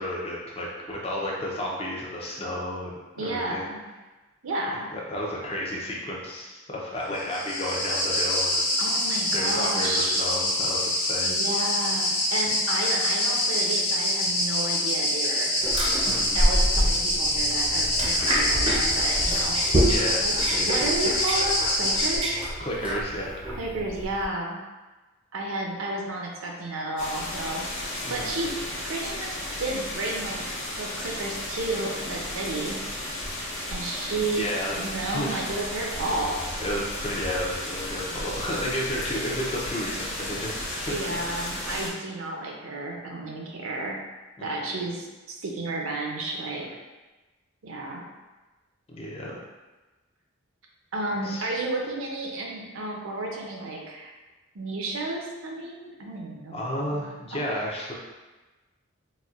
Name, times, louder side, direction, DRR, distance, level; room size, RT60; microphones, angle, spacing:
voice 1, 0.0-3.7 4.9-8.7 9.3-11.3 16.0-16.4 19.8-20.9 22.6-23.4 28.0-28.4 34.2-34.8 35.1-35.4 36.6-41.2 44.4-44.8 48.9-49.4 51.2-51.5 56.5-57.9, left 1 dB, 25° left, -3 dB, 0.5 m, -32 dB
voice 2, 3.2-3.8 4.4-4.9 8.8-10.2 11.2-15.5 16.3-19.6 20.2-20.3 20.6-22.4 23.6-24.6 25.3-27.7 28.1-28.5 28.8-30.4 30.8-32.8 33.7-34.5 34.8-36.4 40.9-44.0 44.4-46.7 47.6-48.1 50.9-54.1 54.5-57.0 57.3-57.5, right 2 dB, 70° right, 0 dB, 0.5 m, -32 dB
sound 1, 7.2-22.2, left 1 dB, 85° left, 1.3 m, -25 dB
sound 2, 15.6-24.2, equal, 25° right, 0.5 m, -27 dB
sound 3, 27.0-41.9, left 1 dB, 60° left, 0.8 m, -34 dB
4.1 x 2.2 x 2.4 m, 1.2 s
head